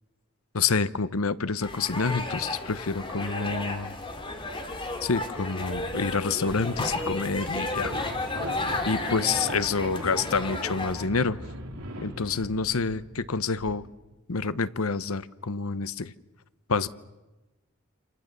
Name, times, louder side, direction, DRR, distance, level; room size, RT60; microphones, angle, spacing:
voice 1, 0.5-3.9 5.0-8.0 8.8-11.4 12.0-13.9 14.3-16.1 16.7-16.9, left 4 dB, 90° left, 15 dB, 0.9 m, -28 dB
sound 1, 1.6-11.0, left 2 dB, 25° left, 2.8 m, -33 dB
sound 2, 5.8-6.2 6.5-13.7, right 1 dB, 80° right, 3.9 m, -40 dB
29.0 x 28.5 x 6.8 m, 1.1 s
head